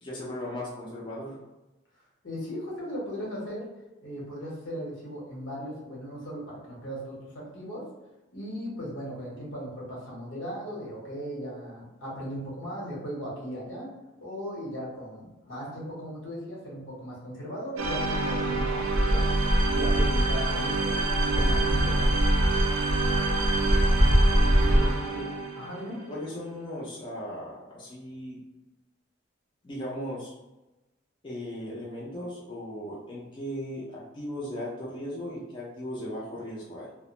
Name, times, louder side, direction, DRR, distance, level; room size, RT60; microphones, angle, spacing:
voice 1, 0.0-1.4 24.6-25.2 26.1-28.4 29.6-30.3 31.2-36.9, equal, 25° left, -6 dB, 0.4 m, -37 dB
voice 2, 2.2-3.7 4.0-7.9 8.3-13.9 14.2-19.3 19.7-22.2 24.6-24.9 25.6-26.0, equal, 75° left, -4 dB, 1.0 m, -37 dB
sound 1, 17.8-24.9, equal, 25° right, 0.5 m, -24 dB
sound 2, 17.8-26.2, right 4 dB, 85° right, 0.4 m, -29 dB
2.4 x 2.0 x 2.9 m, 1.0 s
head